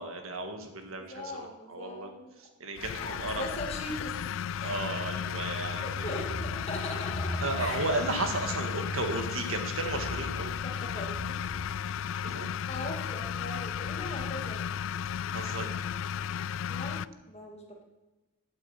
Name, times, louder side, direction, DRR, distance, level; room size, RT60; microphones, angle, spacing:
voice 1, 0.0-2.1 2.4-3.4 4.6-6.3 7.4-10.5 12.2-12.5 15.3-15.7, right 2 dB, 70° right, 5 dB, 1.7 m, -34 dB
voice 2, 0.9-2.4 3.0-4.2 4.6-4.8 5.8-7.9 10.5-11.6 12.7-14.7 16.7-17.8, left 1 dB, 30° left, 0 dB, 2.3 m, -40 dB
sound 1, 2.8-17.0, left 8 dB, 60° left, 0.3 m, -34 dB
sound 2, 5.2-12.1, equal, 10° left, 2.4 m, -41 dB
8.7 x 8.3 x 8.5 m, 1.1 s
head